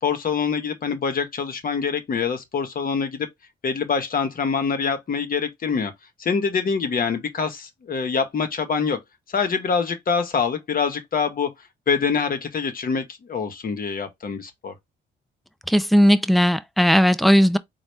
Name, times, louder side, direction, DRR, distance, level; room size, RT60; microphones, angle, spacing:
voice 1, 0.0-3.3 3.6-5.9 6.2-9.0 9.3-11.5 11.9-14.7, left 5 dB, 45° left, 1.0 m, -25 dB
voice 2, 15.7-17.6, equal, ahead, 0.4 m, -17 dB
4.1 x 2.3 x 3.2 m
cardioid pair, 90°, 20 cm